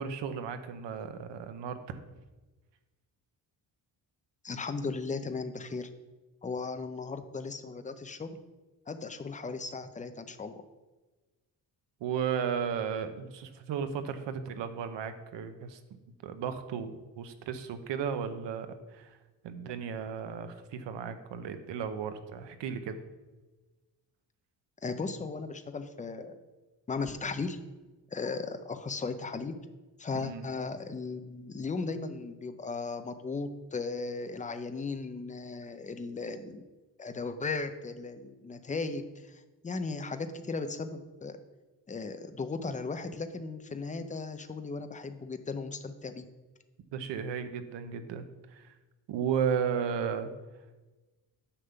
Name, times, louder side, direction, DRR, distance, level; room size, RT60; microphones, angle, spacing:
voice 1, 0.0-2.0 12.0-15.8 16.2-19.2 19.4-23.0 30.1-30.4 46.9-48.7 49.1-50.3, right 7 dB, 85° right, 10 dB, 0.9 m, -34 dB
voice 2, 4.4-5.9 6.4-8.3 8.9-10.5 24.8-26.4 26.9-27.6 28.1-29.6 30.0-36.6 37.0-41.4 41.9-46.2, left 4 dB, 20° left, 9 dB, 0.5 m, -36 dB
9.9 x 3.6 x 6.8 m, 1.2 s
cardioid pair, 130°, 42 cm